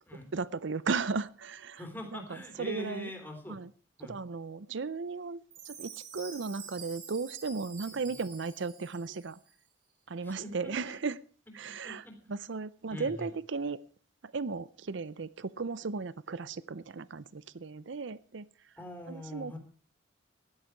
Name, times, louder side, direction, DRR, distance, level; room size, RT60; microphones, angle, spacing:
voice 1, 0.3-1.8 2.1-3.1 3.5-3.7 4.1-9.4 10.1-11.2 11.5-12.0 12.3-13.8 14.2-18.5 19.1-19.6, right 4 dB, 65° right, 18 dB, 0.6 m, -36 dB
voice 2, 1.7-3.6 4.0-4.2 7.8-8.1 10.2-10.9 11.6-12.1 12.9-13.3 18.8-19.6, left 1 dB, 10° left, 4 dB, 3.4 m, -43 dB
Chime, 5.5-9.5, right 6 dB, 45° right, 5.5 m, -48 dB
16.5 x 11.5 x 4.6 m, 0.41 s
head